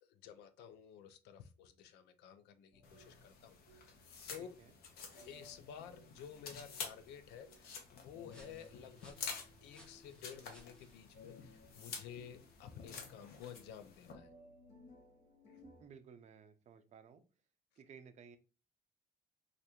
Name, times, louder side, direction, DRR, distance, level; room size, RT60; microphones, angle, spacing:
voice 1, 0.0-4.0 4.3-4.5 5.2-9.3 9.6-14.3 15.5-15.6, left 8 dB, 85° left, 0.5 m, -53 dB
sound 1, 2.7-15.8, left 1 dB, 45° left, 1.4 m, -62 dB
sound 2, 2.8-14.1, left 5 dB, 65° left, 0.9 m, -50 dB
voice 2, 4.4-4.7 15.8-17.2 17.8-18.4, right 6 dB, 45° right, 0.5 m, -57 dB
sound 3, 6.0-13.3, equal, 5° left, 0.8 m, -66 dB
3.2 x 2.5 x 2.9 m
cardioid pair, 110°, 17 cm